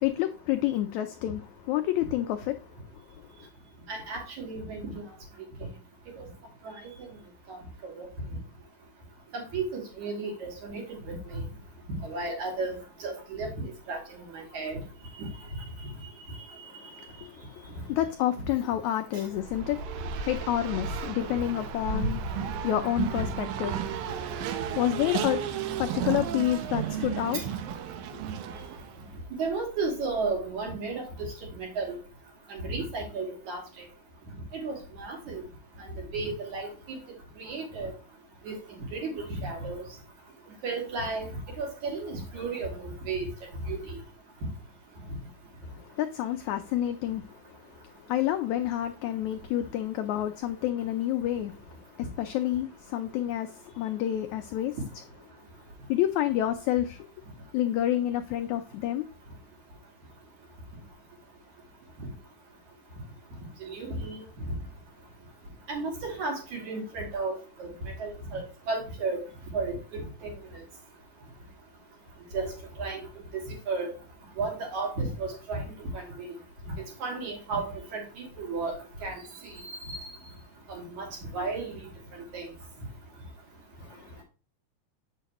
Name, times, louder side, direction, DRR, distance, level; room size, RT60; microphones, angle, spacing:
voice 1, 0.0-2.5 17.9-23.7 24.0-24.3 24.8-25.5 25.8-27.4 46.0-47.2 48.1-51.5 52.0-54.8 55.9-57.0 57.5-59.0, left 12 dB, 85° left, 1.6 m, -29 dB
voice 2, 3.9-4.9 6.6-6.7 7.0-7.1 7.5-8.1 9.3-11.4 12.0-12.8 13.0-14.0 14.3-14.8 15.2-15.3 23.2-23.3 29.4-31.0 31.5-32.0 32.5-33.6 34.6-35.4 36.1-37.0 37.4-37.9 38.5-38.6 38.9-39.8 40.6-41.3 41.6-43.3 43.6-43.8 63.6-64.2 65.7-67.3 67.6-67.7 68.0-68.4 68.7-69.2 69.5-70.3 72.3-72.5 72.8-73.0 73.3-73.9 74.4-75.7 75.9-76.0 77.0-77.7 77.9-78.8 79.0-79.1 79.8-80.0 80.7-81.1 81.3-81.8 82.3-82.5, right 3 dB, 60° right, 3.7 m, -33 dB
Race car auto racing, 19.4-29.0, right 8 dB, 85° right, 2.5 m, -34 dB
7.8 x 6.6 x 2.9 m
omnidirectional pair, 3.9 m